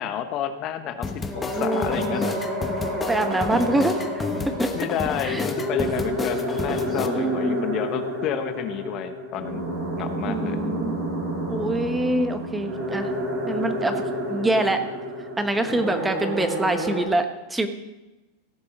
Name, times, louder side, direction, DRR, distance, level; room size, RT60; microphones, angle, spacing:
voice 1, 0.0-2.4 4.7-9.6 10.0-10.6 15.7-15.8, left 9 dB, 45° left, 9 dB, 1.0 m, -30 dB
sound 1, 1.0-7.1, left 4 dB, 20° left, 1.1 m, -31 dB
sound 2, 1.3-17.1, equal, 30° right, 4.5 m, -30 dB
voice 2, 1.5-2.3 3.1-4.7 5.2-5.5 5.8-5.9 7.1-7.6 10.3-11.0 11.5-13.1 13.5-14.8 15.4-17.7, right 2 dB, 10° right, 8 dB, 1.1 m, -25 dB
17.0 x 6.8 x 5.2 m, 1.0 s
hypercardioid pair, 110°, 0 cm